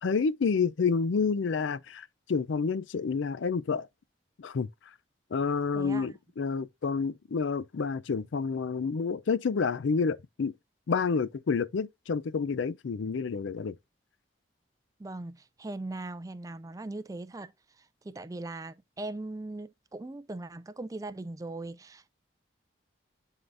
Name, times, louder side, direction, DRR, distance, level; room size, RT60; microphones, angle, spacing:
voice 1, 0.0-3.9 4.4-4.7 5.3-10.5 10.9-13.8, left 5 dB, 85° left, 0.4 m, -29 dB
voice 2, 5.7-6.1 15.0-17.5 17.8-22.2, right 2 dB, 20° right, 0.3 m, -40 dB
11.0 x 3.7 x 2.5 m
head